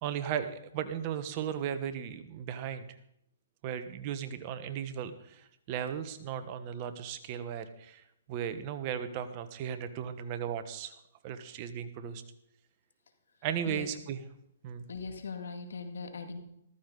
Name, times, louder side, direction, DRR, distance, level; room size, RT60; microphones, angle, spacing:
voice 1, 0.0-2.9 3.6-10.9 11.2-12.2 13.4-14.2 14.6-14.9, right 9 dB, 40° right, 9 dB, 1.2 m, -36 dB
voice 2, 14.9-16.4, left 5 dB, 80° left, 6 dB, 2.2 m, -40 dB
14.5 x 14.0 x 4.0 m, 0.76 s
hypercardioid pair, 140°, 0 cm